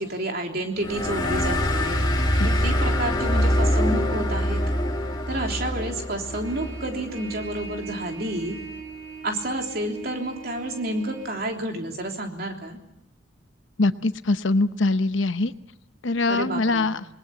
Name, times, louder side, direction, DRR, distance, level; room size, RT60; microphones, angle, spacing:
voice 1, 0.0-2.0 2.6-4.6 5.3-8.6 9.2-12.8 16.3-16.9, right 1 dB, 50° right, 2 dB, 3.3 m, -30 dB
sound 1, 0.8-7.9, equal, 20° left, 2.4 m, -24 dB
Trumpet, 6.3-11.3, right 6 dB, 90° right, 4.4 m, -40 dB
voice 2, 13.8-15.5 16.0-17.1, left 2 dB, 75° left, 11 dB, 0.9 m, -23 dB
27.5 x 20.5 x 7.1 m, 0.87 s
head